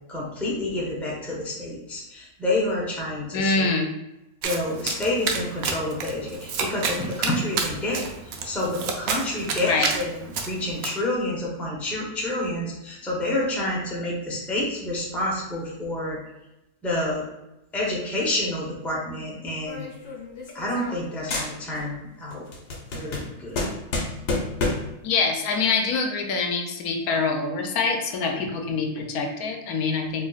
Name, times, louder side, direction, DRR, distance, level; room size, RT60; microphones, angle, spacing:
voice 1, 0.1-3.7 4.4-16.2 16.8-17.3 17.7-19.8 20.5-22.4 22.9-23.6, left 1 dB, ahead, -4 dB, 0.6 m, -28 dB
voice 2, 3.3-3.9 7.0-7.1 9.7-9.9 25.0-30.3, left 4 dB, 80° left, 4 dB, 1.1 m, -25 dB
Domestic sounds home sounds, 4.4-10.9, right 5 dB, 75° right, 1.0 m, -30 dB
sound 1, 19.7-21.0 21.3-22.0 22.3-25.0, left 2 dB, 55° left, 1.0 m, -30 dB
4.4 x 2.9 x 2.3 m, 0.93 s
omnidirectional pair, 1.6 m